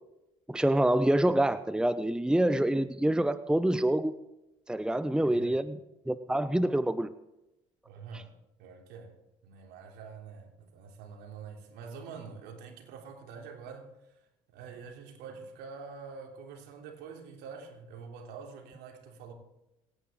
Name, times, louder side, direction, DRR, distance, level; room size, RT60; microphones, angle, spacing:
voice 1, 0.5-4.1 4.7-5.8 6.1-7.1 8.1-8.2, right 1 dB, 5° right, 0.9 m, -26 dB
voice 2, 4.9-5.5 7.8-8.3 8.6-13.9 14.5-19.3, right 5 dB, 65° right, 3.4 m, -46 dB
27.5 x 10.5 x 3.8 m
hypercardioid pair, 55°, 18 cm